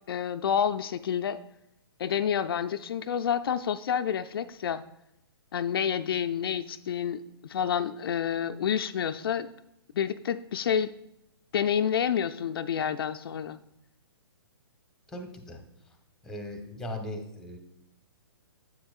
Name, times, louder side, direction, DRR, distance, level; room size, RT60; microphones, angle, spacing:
voice 1, 0.1-1.4 2.0-4.8 5.5-9.5 9.9-10.9 11.5-13.6, left 8 dB, 65° left, 9 dB, 0.4 m, -29 dB
voice 2, 15.1-15.6 16.2-17.6, left 1 dB, 5° left, 5 dB, 0.9 m, -38 dB
8.7 x 7.8 x 2.4 m, 0.82 s
hypercardioid pair, 135°, 13 cm